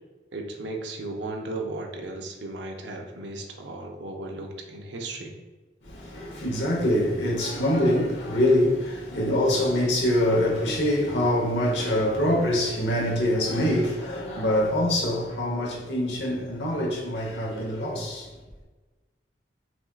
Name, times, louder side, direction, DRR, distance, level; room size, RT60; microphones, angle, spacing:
voice 1, 0.3-5.3, right 2 dB, 90° right, 0.7 m, -35 dB
voice 2, 5.9-18.3, left 1 dB, 90° left, 1.0 m, -24 dB
6.0 x 2.4 x 2.4 m
head